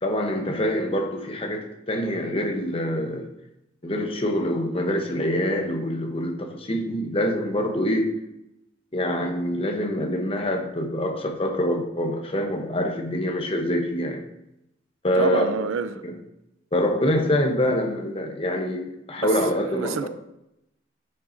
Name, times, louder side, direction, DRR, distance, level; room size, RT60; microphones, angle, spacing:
voice 1, 0.0-3.3 3.8-8.1 8.9-14.2 15.0-15.5 16.0-16.2 16.7-20.1, left 1 dB, 30° left, 0.9 m, -25 dB
voice 2, 15.2-15.9 19.2-19.3 19.7-20.1, right 5 dB, 85° right, 0.4 m, -27 dB
9.3 x 5.7 x 2.7 m
head